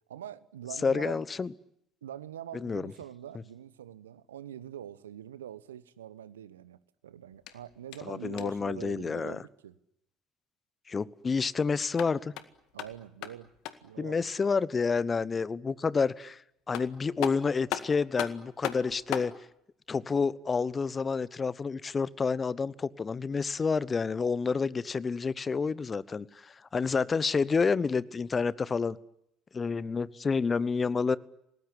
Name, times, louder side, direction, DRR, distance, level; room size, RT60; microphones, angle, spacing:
voice 1, 0.1-1.2 2.0-6.8 7.0-9.7 12.7-13.5 13.8-14.3, right 10 dB, 80° right, 1.0 m, -44 dB
voice 2, 0.8-1.5 2.5-2.9 8.1-9.4 10.9-12.3 14.0-16.4 16.7-19.3 19.9-29.0 29.5-31.2, left 5 dB, 30° left, 1.1 m, -29 dB
sound 1, 7.3-8.7 11.7-14.0 16.3-16.4 16.7-19.4, left 12 dB, 65° left, 1.9 m, -39 dB
28.5 x 19.0 x 10.0 m
figure-of-eight pair, 55°, 0 cm